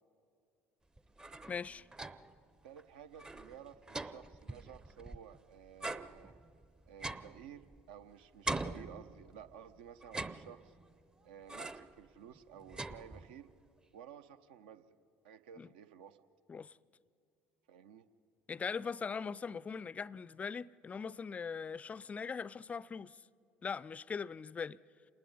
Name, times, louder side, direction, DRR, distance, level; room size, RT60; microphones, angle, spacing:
sound 1, 1.0-2.4 2.8-2.9 3.1-5.4 5.8-8.0 8.5-9.5 10.0-10.9 11.5-12.0 12.4-13.5, right 2 dB, 15° right, 0.7 m, -43 dB
voice 1, 1.5-1.9 15.6-15.7 16.5-16.8 18.5-23.2 23.6-24.8, left 5 dB, 25° left, 0.4 m, -40 dB
voice 2, 2.6-6.3 6.9-10.7 11.2-13.5 13.9-15.0 15.2-16.2 17.7-18.1, right 9 dB, 70° right, 0.9 m, -54 dB
27.5 x 19.5 x 5.5 m
figure-of-eight pair, 60°, 5 cm